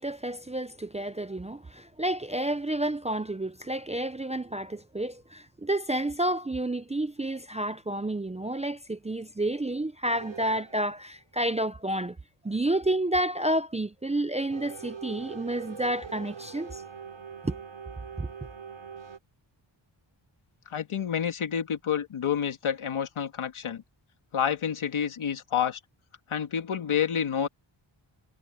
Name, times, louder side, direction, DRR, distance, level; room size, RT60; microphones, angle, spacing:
voice 1, 0.0-12.2 12.4-16.8 17.4-17.6 18.2-18.3, right 1 dB, 15° right, 0.5 m, -30 dB
sound 1, 10.1-11.0 14.5-19.2, right 6 dB, 75° right, 7.3 m, -43 dB
voice 2, 20.7-23.8 24.3-25.8 26.3-27.5, left 8 dB, 80° left, 2.2 m, -29 dB
wide cardioid pair, 155°, 48 cm